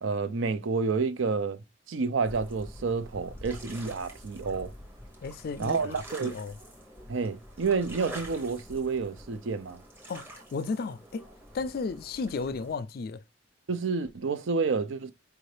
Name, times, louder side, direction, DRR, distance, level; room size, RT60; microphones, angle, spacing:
voice 1, 0.0-1.6 1.9-4.7 5.6-6.4 7.1-9.8 13.7-15.1, right 4 dB, 75° right, 0.5 m, -29 dB
sound 1, 2.2-12.7, equal, 10° right, 0.9 m, -46 dB
voice 2, 5.2-6.5 10.1-11.3 11.5-13.2, left 4 dB, 50° left, 0.3 m, -34 dB
4.7 x 2.6 x 3.2 m
head